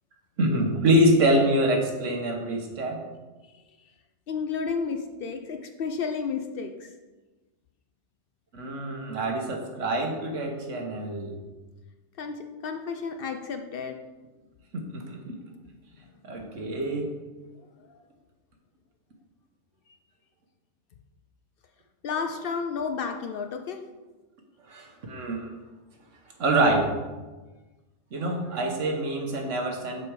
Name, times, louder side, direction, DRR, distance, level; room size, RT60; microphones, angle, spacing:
voice 1, 0.4-3.0 8.5-11.3 14.9-15.4 16.2-17.1 24.7-25.5 26.4-26.9 28.1-30.0, right 1 dB, 85° right, 2 dB, 1.4 m, -25 dB
voice 2, 4.3-6.9 12.2-14.0 17.9-18.0 22.0-23.8, left 5 dB, 60° left, 6 dB, 0.6 m, -32 dB
6.8 x 4.2 x 4.7 m, 1.2 s
omnidirectional pair, 1.2 m